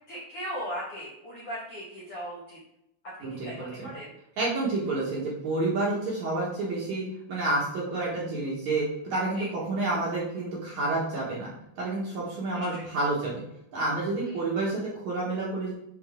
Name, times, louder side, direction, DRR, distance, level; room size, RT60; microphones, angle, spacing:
voice 1, 0.0-2.6 3.4-4.1 9.3-9.5 12.5-12.8 14.2-14.4, equal, 55° left, -7 dB, 1.7 m, -38 dB
voice 2, 3.2-3.9 4.4-13.4 13.7-15.7, right 2 dB, 60° right, -6 dB, 2.3 m, -29 dB
7.9 x 4.4 x 3.6 m, 0.79 s
omnidirectional pair, 4.8 m